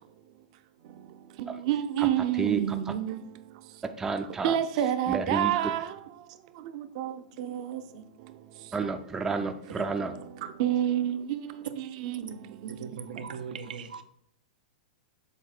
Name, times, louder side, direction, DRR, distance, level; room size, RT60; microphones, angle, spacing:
voice 1, 1.7-3.1 4.4-5.8 7.0-7.1 7.5-7.6 10.6-11.2 12.0-12.2, right 11 dB, 50° right, 0.7 m, -27 dB
voice 2, 2.4-2.9 3.8-4.5 5.1-5.5 8.7-10.1, right 4 dB, 10° right, 0.4 m, -30 dB
voice 3, 12.7-14.0, right 6 dB, 85° right, 0.7 m, -39 dB
7.1 x 3.9 x 4.4 m
hypercardioid pair, 135°, 4 cm